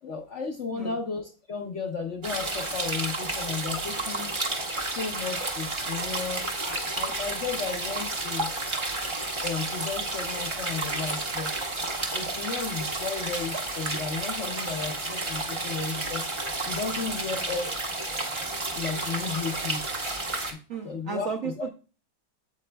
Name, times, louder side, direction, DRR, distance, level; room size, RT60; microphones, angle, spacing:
voice 1, 0.0-4.3 4.9-8.5 9.4-11.5 12.1-16.2 16.6-17.7 18.7-19.8 20.5-21.7, left 5 dB, 60° left, 2 dB, 0.8 m, -34 dB
sound 1, 2.2-20.5, right 2 dB, 30° right, 0.5 m, -31 dB
voice 2, 20.7-21.7, right 6 dB, 65° right, 3 dB, 0.8 m, -34 dB
8.2 x 7.6 x 2.2 m, 0.35 s
omnidirectional pair, 2.1 m